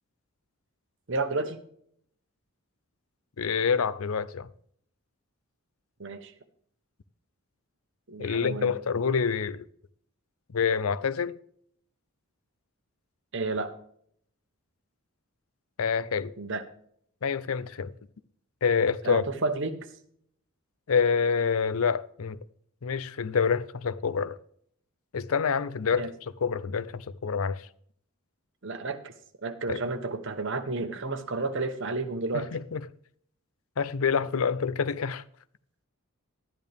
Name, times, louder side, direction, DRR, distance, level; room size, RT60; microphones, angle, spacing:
voice 1, 1.1-1.6 6.0-6.3 8.1-8.7 13.3-13.7 16.4-16.6 19.0-19.9 25.9-26.1 28.6-29.1 29.4-32.5, right 3 dB, 55° right, 1.1 m, -31 dB
voice 2, 3.4-4.5 8.2-9.6 10.5-11.4 15.8-16.3 17.2-17.9 18.6-19.2 20.9-22.4 22.8-24.4 25.1-27.6 29.7-29.8 32.3-32.8 33.8-35.2, left 6 dB, 70° left, 0.5 m, -27 dB
12.0 x 10.5 x 3.5 m
head